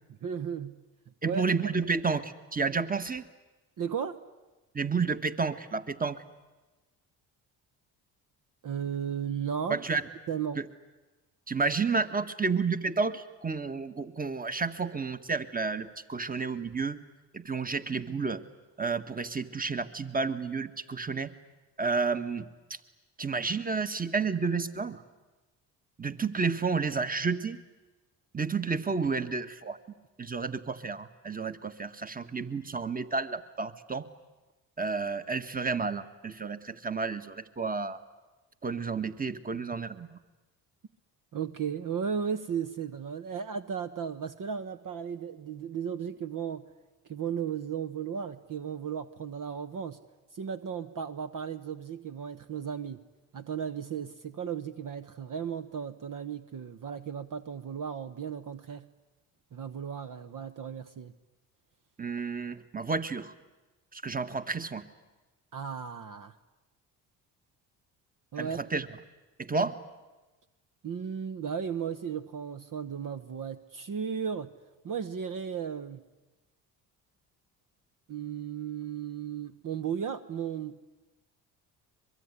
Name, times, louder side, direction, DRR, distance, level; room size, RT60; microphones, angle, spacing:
voice 1, 0.2-0.8 1.2-1.4 3.8-4.2 8.6-9.8 10.3-10.6 41.3-46.7 47.1-50.0 50.3-53.0 53.3-58.9 59.5-61.1 65.5-66.3 68.3-68.6 70.8-74.5 74.8-76.0 78.1-80.8, right 7 dB, 50° right, 10 dB, 1.2 m, -35 dB
voice 2, 1.2-3.2 4.7-6.2 9.7-10.1 10.6-10.7 11.5-17.0 17.3-18.4 18.8-21.3 21.8-22.5 23.2-25.0 26.0-27.6 28.3-29.8 30.2-34.1 34.8-38.0 38.6-40.1 62.0-63.3 63.9-64.8 68.4-68.9 69.4-69.7, right 4 dB, 20° right, 11 dB, 1.7 m, -31 dB
23.5 x 23.0 x 9.9 m, 1.2 s
supercardioid pair, 65°, 42 cm